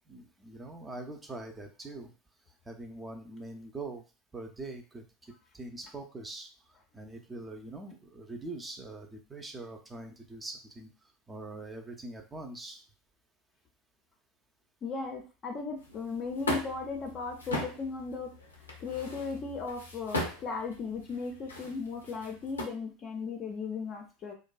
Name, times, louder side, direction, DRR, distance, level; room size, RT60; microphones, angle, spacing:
voice 1, 0.1-2.1 2.7-4.0 4.3-5.1 5.5-6.5 6.9-10.9 11.3-12.8, right 2 dB, 15° right, 3 dB, 0.5 m, -43 dB
voice 2, 14.8-18.3 18.6-24.3, left 4 dB, 40° left, 2 dB, 0.5 m, -37 dB
sound 1, 15.8-22.6, left 1 dB, 85° left, 0.5 m, -39 dB
2.5 x 2.1 x 2.3 m, 0.33 s
figure-of-eight pair, 80°, 0 cm